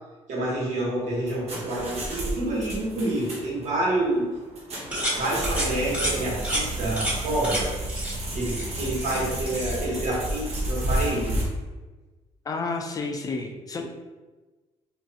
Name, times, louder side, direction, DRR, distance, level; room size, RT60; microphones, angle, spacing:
voice 1, 0.3-4.3 5.1-7.7 8.3-11.4, right 1 dB, 80° right, -5 dB, 1.2 m, -28 dB
sound 1, 1.0-11.4, right 1 dB, 55° right, 0.9 m, -32 dB
sound 2, 4.9-5.2 5.4-5.7 5.9-6.1 6.4-6.6 7.0-7.1 7.4-7.6 7.9-8.1 8.4-9.2 9.5-9.7, equal, 10° right, 1.2 m, -29 dB
voice 2, 12.5-13.8, left 3 dB, 30° left, 3 dB, 0.3 m, -30 dB
2.5 x 2.3 x 4.0 m, 1.2 s
cardioid pair, 130°, 12 cm